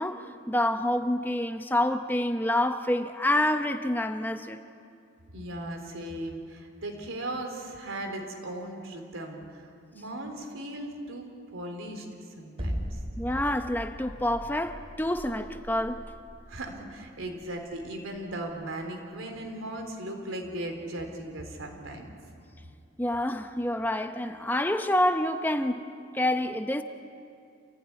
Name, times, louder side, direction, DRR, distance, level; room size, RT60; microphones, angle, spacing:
voice 1, 0.0-4.6 13.2-16.0 23.0-25.8 26.1-26.8, left 1 dB, 10° left, 0.8 m, -27 dB
voice 2, 5.3-13.0 16.5-22.1, right 1 dB, 80° right, 3.8 m, -38 dB
sound 1, 12.6-18.8, equal, 30° right, 2.7 m, -38 dB
28.0 x 16.5 x 9.9 m
head